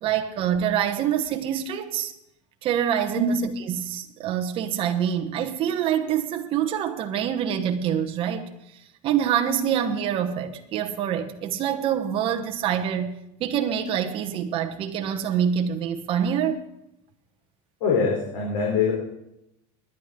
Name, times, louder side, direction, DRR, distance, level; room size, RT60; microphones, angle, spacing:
voice 1, 0.0-2.1 2.6-8.4 9.0-16.6, right 9 dB, 35° right, 1.1 m, -26 dB
voice 2, 17.8-18.9, left 4 dB, 70° left, 3.6 m, -23 dB
22.0 x 10.0 x 3.7 m
cardioid pair, 165°, 16 cm